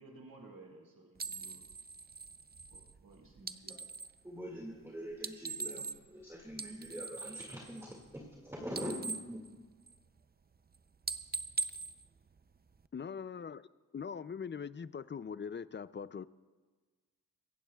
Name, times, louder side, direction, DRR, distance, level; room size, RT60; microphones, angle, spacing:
voice 1, 0.0-1.6 2.7-3.8, right 2 dB, 75° right, 0 dB, 2.2 m, -55 dB
sound 1, 1.2-4.2 5.1-6.2 6.5-8.4 8.6-10.2 10.5-10.8 11.0-12.9, right 4 dB, 30° right, 0.5 m, -42 dB
voice 2, 4.2-9.4, equal, 10° right, -2 dB, 2.0 m, -44 dB
voice 3, 12.9-13.7 13.9-16.3, left 6 dB, 35° left, 16 dB, 0.4 m, -41 dB
24.5 x 15.5 x 2.3 m, 1.4 s
wide cardioid pair, 95°, 34 cm